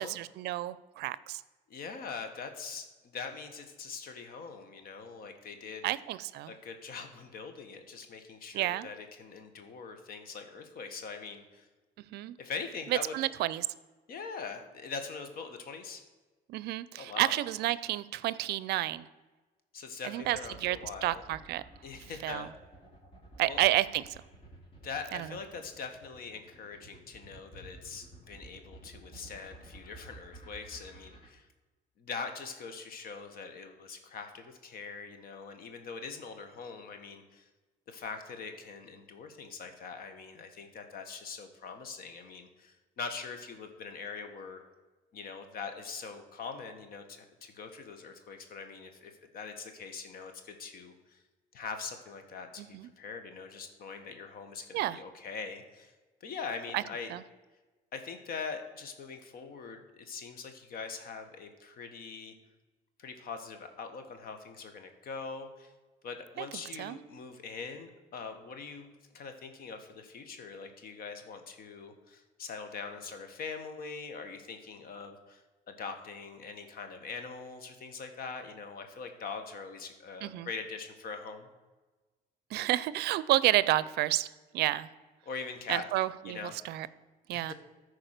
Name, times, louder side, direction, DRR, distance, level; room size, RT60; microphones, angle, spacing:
voice 1, 0.0-1.4 5.8-6.5 8.5-8.9 12.1-12.4 12.9-13.7 16.5-19.1 20.0-21.6 22.2-22.5 23.4-24.0 25.1-25.3 52.6-52.9 54.7-55.0 56.7-56.8 57.1-57.2 66.4-66.5 66.8-67.0 80.2-80.5 82.5-84.3 84.5-84.9 85.7-86.9 87.3-87.5, right 15 dB, 75° right, 17 dB, 0.5 m, -30 dB
voice 2, 1.7-5.9 6.5-11.7 12.4-13.1 14.1-16.0 17.0-17.3 19.7-21.2 21.8-22.5 23.4-23.6 24.8-31.5 32.0-37.5 37.9-44.6 45.1-51.2 51.5-55.9 56.2-57.1 57.9-62.3 63.0-65.7 66.0-81.5 85.2-85.9 86.2-86.5 87.3-87.5, left 5 dB, 60° left, 7 dB, 1.5 m, -42 dB
sound 1, 20.2-31.3, right 2 dB, 30° left, 2.6 m, -52 dB
13.5 x 4.7 x 6.6 m, 1.2 s
cardioid pair, 110°, 17 cm